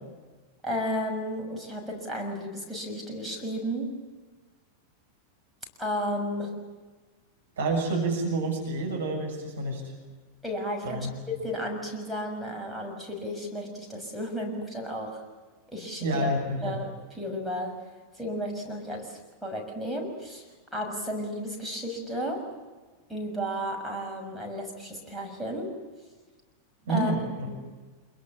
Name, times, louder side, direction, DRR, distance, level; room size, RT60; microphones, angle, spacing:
voice 1, 0.6-4.0 5.8-6.6 10.4-15.2 15.7-16.3 16.6-16.9 17.2-17.9 18.1-20.4 20.7-22.5 23.1-25.8 26.9-27.1 27.5-27.6, equal, ahead, 0 dB, 6.5 m, -33 dB
voice 2, 7.6-9.9 10.8-11.1 16.0-16.8 26.9-27.5, right 2 dB, 65° right, 0 dB, 7.0 m, -28 dB
27.0 x 22.5 x 7.4 m, 1.3 s
figure-of-eight pair, 90°, 0 cm